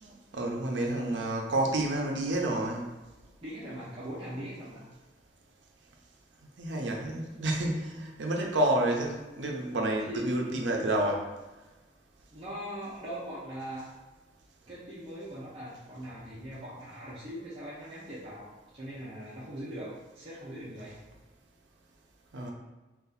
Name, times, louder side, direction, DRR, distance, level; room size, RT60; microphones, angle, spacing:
voice 1, 0.0-2.9 6.6-11.3 22.3-22.5, right 1 dB, 90° right, 0 dB, 0.6 m, -29 dB
voice 2, 3.4-4.8 10.1-10.3 12.3-13.9 14.7-21.0, equal, 35° right, -10 dB, 0.7 m, -41 dB
2.7 x 2.4 x 3.9 m, 1.1 s
head